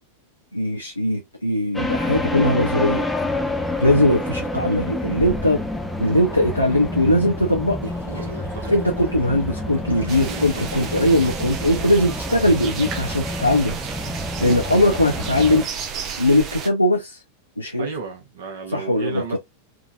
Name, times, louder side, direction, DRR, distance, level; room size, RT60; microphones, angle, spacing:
voice 1, 0.5-3.0 3.8-5.6 6.0-7.9 8.7-13.8 14.4-15.7 16.2-17.2 17.6-17.9 18.7-19.4, left 1 dB, 85° left, 0.5 m, -20 dB
sound 1, 1.7-15.7, left 1 dB, 5° left, 0.6 m, -28 dB
Gurgling / Toilet flush, 7.8-11.6, right 1 dB, 75° right, 1.2 m, -40 dB
sound 2, 10.1-16.7, right 7 dB, 35° right, 0.7 m, -33 dB
voice 2, 17.8-19.4, right 5 dB, 55° right, 1.3 m, -33 dB
3.6 x 2.6 x 2.2 m
figure-of-eight pair, 90°, 0 cm